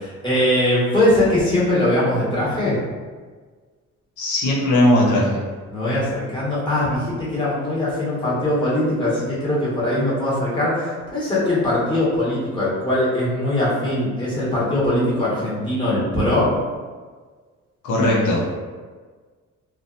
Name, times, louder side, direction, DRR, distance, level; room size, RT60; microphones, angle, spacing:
voice 1, 0.0-2.8 5.7-16.5, left 1 dB, 15° left, -9 dB, 1.3 m, -21 dB
voice 2, 4.2-5.4 17.8-18.4, left 1 dB, 85° left, -4 dB, 0.7 m, -18 dB
2.6 x 2.2 x 2.4 m, 1.5 s
cardioid pair, 90°, 30 cm